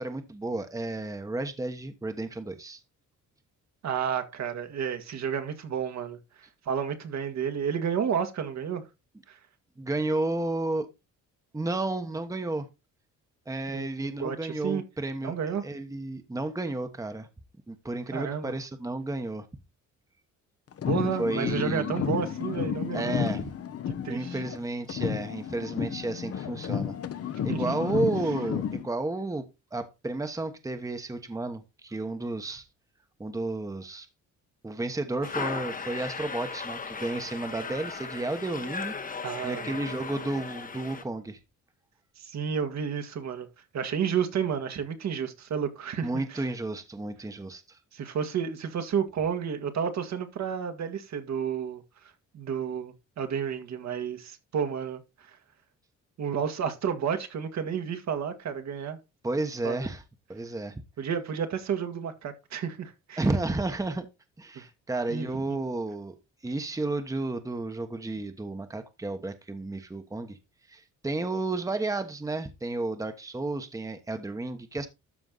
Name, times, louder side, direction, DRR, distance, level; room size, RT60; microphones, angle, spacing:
voice 1, 0.0-2.8 9.8-10.9 11.5-12.7 13.5-15.3 15.6-17.3 17.7-19.5 21.2-22.1 22.9-23.5 24.1-27.0 27.4-32.7 33.2-34.1 34.6-38.9 39.4-41.4 46.0-47.8 59.2-60.0 60.3-60.8 63.2-64.1 64.4-66.1 66.4-70.4 70.7-74.9, right 2 dB, 10° right, 1.1 m, -32 dB
voice 2, 3.8-8.8 9.3-9.4 13.7-13.9 14.2-14.8 15.2-15.6 18.1-18.5 20.9-23.1 23.9-24.4 27.5-27.9 39.2-39.7 42.2-43.5 43.7-46.5 47.9-51.8 52.3-55.4 56.2-59.0 59.6-59.8 61.0-63.2 64.6-64.7 65.1-65.6, right 7 dB, 65° right, 1.8 m, -31 dB
sound 1, 20.7-24.6 24.9-28.9, left 8 dB, 50° left, 1.0 m, -32 dB
sound 2, 35.2-41.0, left 5 dB, 25° left, 1.1 m, -37 dB
13.0 x 4.5 x 3.9 m
cardioid pair, 90°, 30 cm